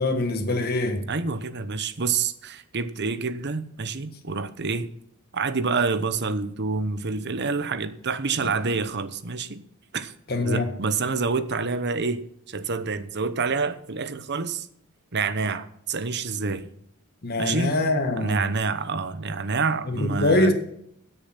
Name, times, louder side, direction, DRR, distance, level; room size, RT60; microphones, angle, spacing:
voice 1, 0.0-1.0 10.3-10.7 17.2-18.4 19.9-20.5, left 2 dB, 45° left, 1.7 m, -23 dB
voice 2, 1.1-4.9 5.3-9.6 9.9-10.1 10.4-12.2 12.5-14.7 15.1-16.7 17.4-17.8 18.2-20.5, right 4 dB, 50° right, 0.9 m, -27 dB
16.5 x 6.8 x 5.9 m
head